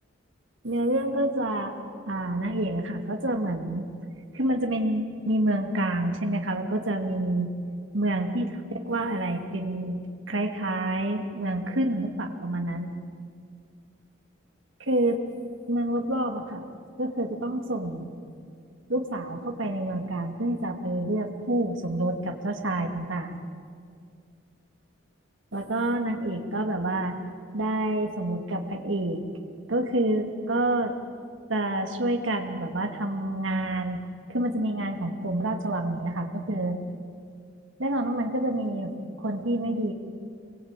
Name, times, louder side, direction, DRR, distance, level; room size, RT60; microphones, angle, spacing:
voice 1, 0.6-1.7 2.1-3.9 4.3-7.5 7.9-12.9 14.8-15.2 15.7-16.7 17.0-18.1 18.9-23.3 25.5-27.2 27.5-29.2 29.7-30.9 31.5-36.8 37.8-38.9 39.2-39.9, right 1 dB, 80° right, 4 dB, 2.5 m, -28 dB
27.5 x 22.5 x 9.2 m, 2.2 s
head